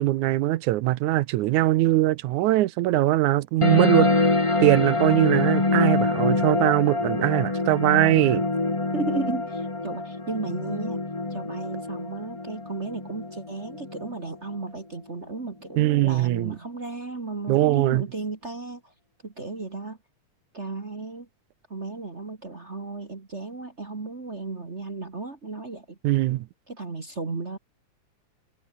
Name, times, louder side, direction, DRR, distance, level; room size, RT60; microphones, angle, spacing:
voice 1, 0.0-4.1 4.6-8.4 15.8-16.6 17.5-18.0 26.0-26.4, right 16 dB, 75° right, 2.1 m, -21 dB
sound 1, 3.6-14.6, left 2 dB, 30° left, 0.5 m, -25 dB
voice 2, 8.9-11.0 11.3-18.8 19.2-20.0 20.5-21.3 21.7-26.0 26.7-27.6, right 3 dB, 30° right, 1.6 m, -34 dB
omnidirectional pair, 3.6 m